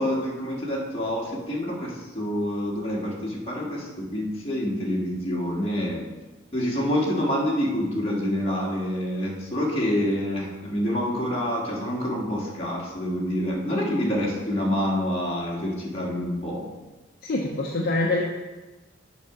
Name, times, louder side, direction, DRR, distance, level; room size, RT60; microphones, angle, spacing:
voice 1, 0.0-6.0 6.5-16.6, equal, 30° left, -4 dB, 1.7 m, -27 dB
voice 2, 17.2-18.2, left 2 dB, 50° left, -1 dB, 0.7 m, -25 dB
7.1 x 4.8 x 5.7 m, 1.2 s
head